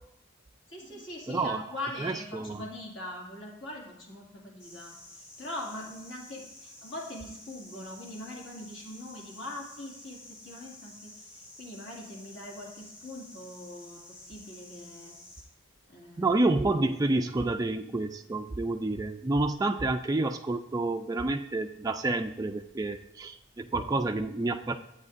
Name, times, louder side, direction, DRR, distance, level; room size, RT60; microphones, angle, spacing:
voice 1, 0.7-15.2 15.9-16.4, left 1 dB, 60° left, -2 dB, 2.1 m, -42 dB
voice 2, 1.3-1.6 2.0-2.6 16.2-24.8, right 2 dB, 15° right, 5 dB, 0.3 m, -29 dB
sound 1, 4.6-15.4, left 2 dB, 30° left, 2.9 m, -51 dB
12.0 x 8.5 x 2.5 m, 0.90 s
head